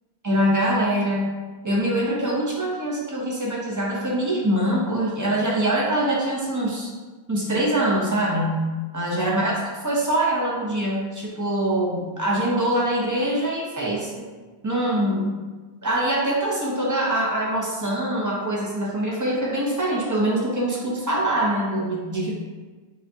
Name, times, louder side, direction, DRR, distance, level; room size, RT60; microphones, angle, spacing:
voice 1, 0.2-1.3 1.6-6.9 7.3-8.6 8.9-9.6 9.8-14.2 14.6-15.3 15.8-22.3, right 1 dB, 20° right, -4 dB, 0.6 m, -24 dB
5.0 x 2.3 x 2.7 m, 1.3 s
omnidirectional pair, 1.1 m